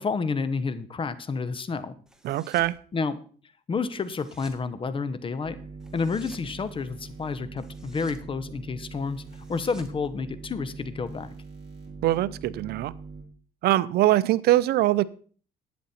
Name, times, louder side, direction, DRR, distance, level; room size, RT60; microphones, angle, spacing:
voice 1, 0.0-1.9 2.9-3.2 3.7-5.6 5.9-9.2 9.5-11.3, left 4 dB, 30° left, 1.0 m, -30 dB
sound 1, 2.1-2.8 3.9-4.7 5.8-6.5 7.6-8.3 9.3-10.8, right 1 dB, 5° right, 1.6 m, -52 dB
voice 2, 2.2-2.8 12.0-12.9 13.6-15.1, right 15 dB, 70° right, 0.6 m, -22 dB
sound 2, 5.4-13.2, right 4 dB, 30° right, 4.2 m, -42 dB
12.0 x 9.4 x 4.3 m
cardioid pair, 110°, 17 cm